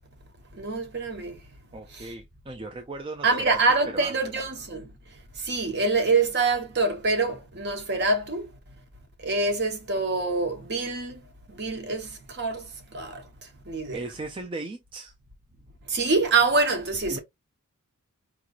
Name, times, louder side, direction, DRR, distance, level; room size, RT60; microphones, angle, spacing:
voice 1, 0.5-1.4 1.9-2.1 3.2-4.9 5.3-8.5 9.2-11.2 11.5-13.2 13.6-14.0 15.9-17.2, right 3 dB, 50° right, 1.0 m, -25 dB
voice 2, 1.7-4.1 13.9-15.1 17.1-17.2, right 2 dB, 25° right, 0.4 m, -37 dB
4.8 x 3.0 x 2.4 m
head